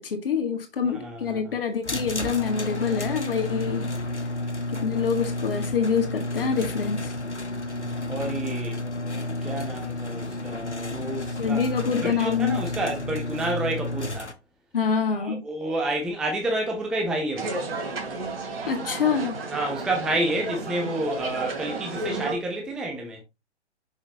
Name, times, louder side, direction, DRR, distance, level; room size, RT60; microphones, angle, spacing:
voice 1, 0.0-3.9 4.7-7.1 11.4-12.7 14.7-15.4 18.7-19.4, left 6 dB, 55° left, 1.9 m, -26 dB
voice 2, 0.9-1.4 4.3-4.6 7.7-8.8 9.4-14.3 15.2-17.6 19.5-23.2, right 1 dB, ahead, 0.5 m, -30 dB
sound 1, 1.8-14.3, left 1 dB, 85° left, 1.1 m, -31 dB
sound 2, 17.4-22.3, right 3 dB, 60° right, 2.8 m, -32 dB
6.2 x 5.9 x 2.9 m
figure-of-eight pair, 120°, 34 cm